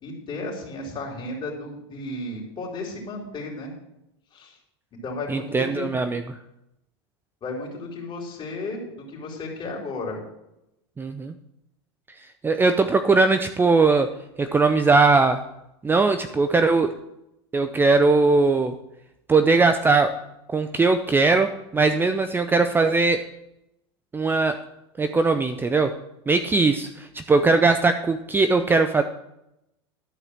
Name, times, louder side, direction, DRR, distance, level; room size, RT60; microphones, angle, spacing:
voice 1, 0.0-3.7 4.3-4.6 5.0-6.0 7.4-10.2, left 2 dB, 35° left, -1 dB, 3.8 m, -34 dB
voice 2, 5.3-6.2 11.0-11.3 12.4-14.1 14.4-15.4 15.8-17.0 17.5-18.7 19.3-20.2 20.5-23.2 24.1-24.6 25.0-25.9 26.3-29.0, right 3 dB, 15° right, 8 dB, 0.6 m, -20 dB
12.0 x 4.9 x 7.3 m, 0.85 s
hypercardioid pair, 105°, 14 cm